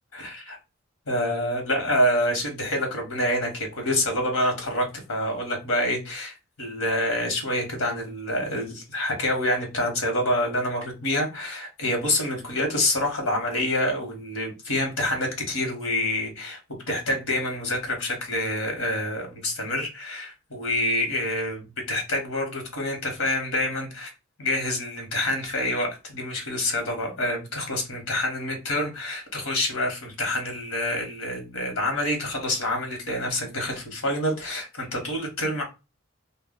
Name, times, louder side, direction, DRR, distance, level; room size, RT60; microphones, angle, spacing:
voice 1, 0.1-0.6 1.1-16.6 16.9-24.1 24.4-35.6, left 1 dB, 75° left, 1.1 m, -27 dB
2.2 x 2.2 x 3.5 m
head